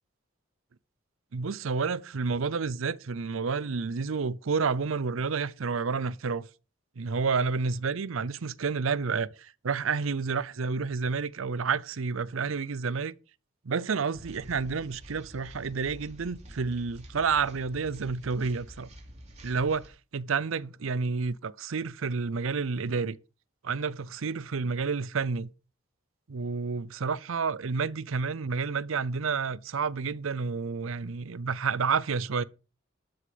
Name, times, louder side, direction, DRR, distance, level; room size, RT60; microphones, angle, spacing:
voice 1, 1.3-6.5 7.0-13.1 13.6-18.9 19.4-23.2 23.6-25.5 26.3-32.4, right 5 dB, 80° right, 0.6 m, -30 dB
sound 1, 14.1-19.9, equal, 35° right, 2.9 m, -48 dB
13.0 x 6.6 x 5.2 m
head